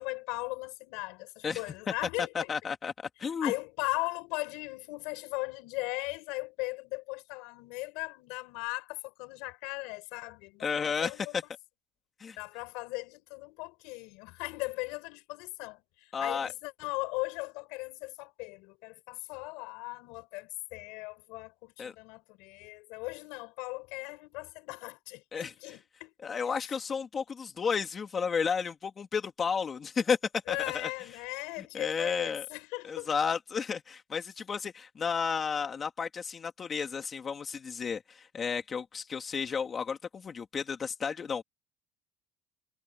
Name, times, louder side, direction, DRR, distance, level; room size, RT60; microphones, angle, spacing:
voice 1, 0.0-2.5 3.4-11.4 12.4-26.1 26.5-26.7 30.5-33.1, left 26 dB, 85° left, 5.6 m, -38 dB
voice 2, 2.2-3.5 10.6-11.4 12.2-12.4 16.1-16.5 21.8-21.9 25.3-25.5 26.2-30.2 30.5-30.9 31.7-32.5 32.9-41.4, left 6 dB, 25° left, 2.4 m, -32 dB
cardioid pair, 160°, 0 cm